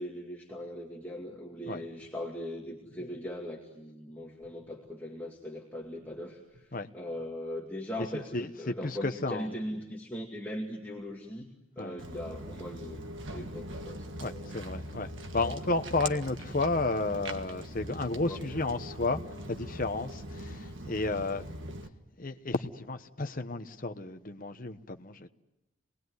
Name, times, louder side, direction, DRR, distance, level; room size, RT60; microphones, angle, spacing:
voice 1, 0.0-14.6 15.4-15.8 16.2-16.3 18.2-18.5, left 1 dB, 10° left, 2.3 m, -40 dB
voice 2, 8.1-8.5 8.8-9.5 11.8-12.0 14.2-19.2 19.5-21.4 22.2-25.3, left 3 dB, 40° left, 1.2 m, -32 dB
Walk footsteps, 12.0-21.9, right 1 dB, 65° right, 1.7 m, -41 dB
28.0 x 20.5 x 9.6 m
head